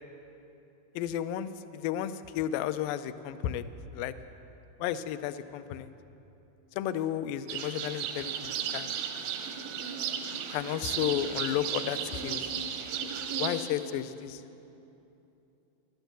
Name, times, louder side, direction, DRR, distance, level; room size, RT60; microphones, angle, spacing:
voice 1, 1.0-3.6 3.9-4.1 4.8-5.9 6.8-9.0 10.5-12.5 13.4-14.4, left 11 dB, 80° left, 12 dB, 2.2 m, -33 dB
sound 1, 7.5-13.7, right 7 dB, 80° right, 2.8 m, -34 dB
14.0 x 12.0 x 8.1 m, 2.9 s
omnidirectional pair, 4.3 m